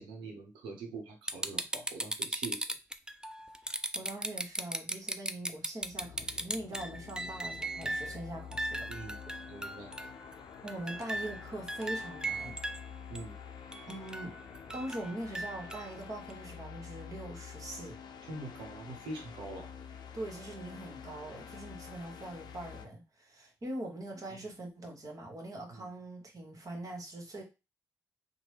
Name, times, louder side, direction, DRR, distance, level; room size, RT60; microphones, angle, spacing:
voice 1, 0.0-2.7 7.8-7.9 8.9-9.2 9.5-10.0 13.1-13.4 18.3-19.7 25.7-25.9, right 2 dB, 80° right, 2 dB, 0.8 m, -44 dB
sound 1, 1.3-8.2 8.5-10.3 10.7-12.8 13.2-13.3 13.7-15.9 16.3-16.4, right 1 dB, 10° right, 0.4 m, -37 dB
voice 2, 3.9-8.8 10.6-12.6 13.9-14.4 14.7-18.0 20.1-27.4, right 1 dB, 45° right, 2 dB, 1.2 m, -42 dB
sound 2, 5.8-22.9, left 7 dB, 60° left, 0.5 m, -48 dB
2.8 x 2.1 x 3.2 m, 0.27 s
hypercardioid pair, 40°, 8 cm